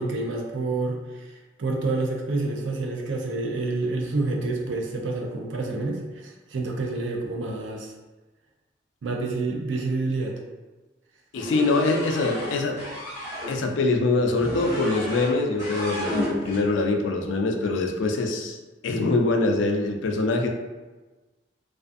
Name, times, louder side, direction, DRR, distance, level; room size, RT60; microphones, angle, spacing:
voice 1, 0.0-1.3 1.6-7.9 9.0-10.4, right 3 dB, 85° right, 0 dB, 0.5 m, -28 dB
voice 2, 11.3-12.8 13.5-18.6 18.8-20.5, left 3 dB, 80° left, 3 dB, 0.4 m, -24 dB
sound 1, 11.3-13.5 14.4-15.3 15.6-16.6, left 1 dB, 15° right, 1.2 m, -32 dB
2.4 x 2.4 x 2.4 m, 1.2 s
head